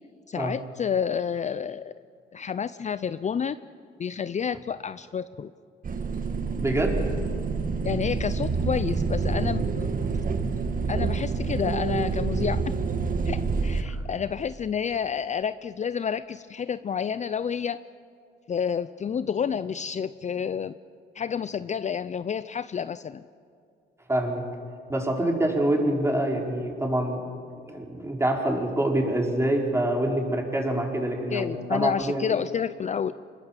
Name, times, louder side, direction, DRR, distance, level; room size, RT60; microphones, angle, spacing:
voice 1, 0.3-1.9 2.3-3.6 4.0-5.5 7.8-9.9 10.9-12.7 13.3-17.8 18.5-20.8 21.2-23.2 31.3-33.1, left 7 dB, 35° left, 14 dB, 0.5 m, -29 dB
sound 1, 5.8-13.8, right 4 dB, 45° right, 1.7 m, -27 dB
voice 2, 6.6-7.0 13.8-14.0 24.1-24.4 24.9-27.3 27.7-32.3, right 1 dB, 15° right, 1 dB, 4.6 m, -26 dB
25.5 x 21.5 x 7.5 m, 2.4 s
cardioid pair, 90°, 20 cm